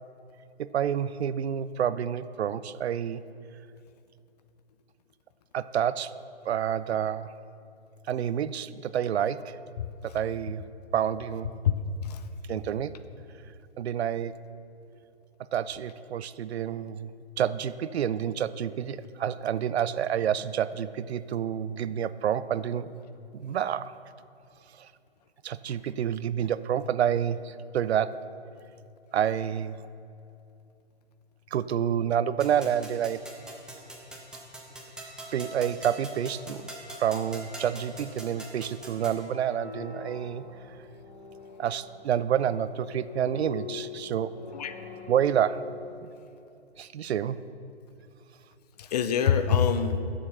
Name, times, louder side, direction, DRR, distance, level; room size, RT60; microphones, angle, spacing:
voice 1, 0.6-3.2 5.5-6.1 6.5-7.3 8.1-9.5 10.0-10.6 10.9-11.6 12.5-12.9 13.8-14.3 15.5-17.1 17.4-22.9 23.3-23.9 24.8-24.9 25.4-28.1 29.1-29.8 31.5-33.2 35.3-36.7 37.0-40.4 41.6-44.3 45.1-45.6 46.8-47.4, right 9 dB, 75° right, 16 dB, 0.5 m, -28 dB
voice 2, 11.6-12.2 44.5-44.7 48.8-50.0, left 7 dB, 40° left, 11 dB, 0.5 m, -25 dB
sound 1, 32.4-39.2, right 1 dB, ahead, 0.8 m, -43 dB
sound 2, 39.0-46.0, left 6 dB, 80° left, 1.5 m, -44 dB
8.8 x 7.3 x 5.6 m, 2.7 s
hypercardioid pair, 135°, 33 cm